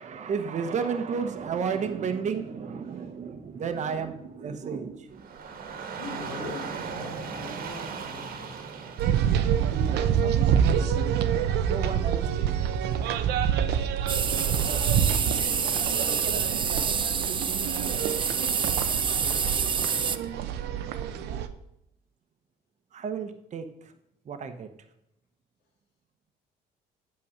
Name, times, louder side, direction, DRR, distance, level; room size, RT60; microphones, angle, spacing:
voice 1, 0.0-5.4 10.2-11.2 11.5-12.5 22.9-23.9 24.2-24.7, right 6 dB, 45° right, 7 dB, 1.1 m, -33 dB
Dog / Rain, 5.1-17.3, right 5 dB, 60° right, 1.6 m, -41 dB
voice 2, 6.0-8.5 14.3-16.6 17.2-18.8 19.2-21.3, left 2 dB, 90° left, 0 dB, 3.4 m, -44 dB
sound 1, 9.0-21.5, right 8 dB, 80° right, 0.8 m, -27 dB
sound 2, 14.1-20.2, right 6 dB, 30° right, 0.6 m, -27 dB
8.8 x 7.0 x 6.5 m, 0.80 s
cardioid pair, 110°, 17 cm